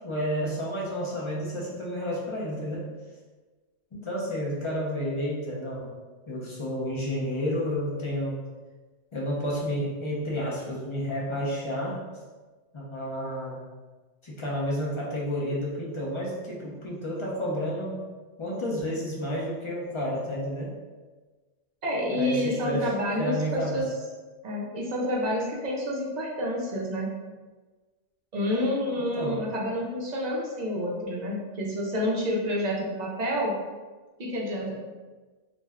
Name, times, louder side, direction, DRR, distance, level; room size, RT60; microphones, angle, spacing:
voice 1, 0.0-2.9 3.9-5.9 6.3-8.4 9.1-12.0 12.7-13.6 14.2-18.0 18.4-20.7 22.1-22.9 23.2-23.8 28.9-29.4, equal, 40° left, -5 dB, 0.4 m, -31 dB
voice 2, 21.8-23.9 24.4-27.1 28.3-33.5 34.2-34.8, left 1 dB, 55° right, -3 dB, 0.4 m, -29 dB
2.5 x 2.1 x 3.4 m, 1.3 s
omnidirectional pair, 1.2 m